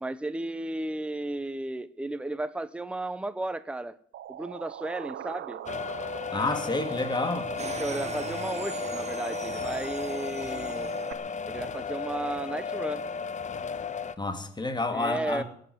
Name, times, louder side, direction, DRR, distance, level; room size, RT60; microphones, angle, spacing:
voice 1, 0.0-3.9 4.3-5.6 7.6-10.9 11.5-13.1 14.9-15.4, right 2 dB, 5° right, 0.8 m, -34 dB
sound 1, 4.1-11.1, right 11 dB, 70° right, 1.2 m, -42 dB
sound 2, 5.7-14.2, left 5 dB, 35° left, 1.0 m, -34 dB
voice 2, 6.3-7.5 14.2-15.4, left 2 dB, 20° left, 2.4 m, -29 dB
sound 3, 7.6-11.2, right 5 dB, 35° right, 1.3 m, -41 dB
17.0 x 7.9 x 9.8 m
cardioid pair, 90°, 20 cm